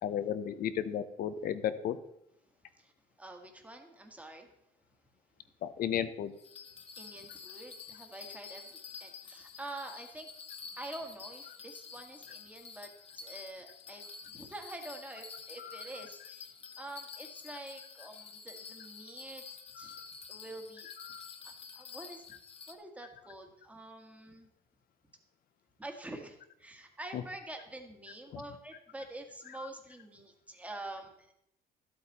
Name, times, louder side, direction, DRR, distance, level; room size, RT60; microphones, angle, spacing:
voice 1, 0.0-2.0 5.6-6.3 15.6-16.0 19.8-20.1 21.0-21.3 27.1-27.2 28.3-28.4, left 9 dB, 60° left, 12 dB, 0.8 m, -35 dB
voice 2, 3.2-4.5 7.0-10.3 10.8-12.9 13.1-19.4 19.7-20.0 20.3-20.9 21.4-22.2 22.7-24.5 25.8-31.3, right 2 dB, 10° right, 4 dB, 1.7 m, -47 dB
Bell, 6.4-22.7, left 5 dB, 35° left, 1.0 m, -49 dB
12.5 x 8.3 x 4.2 m, 0.80 s
cardioid pair, 110°, 17 cm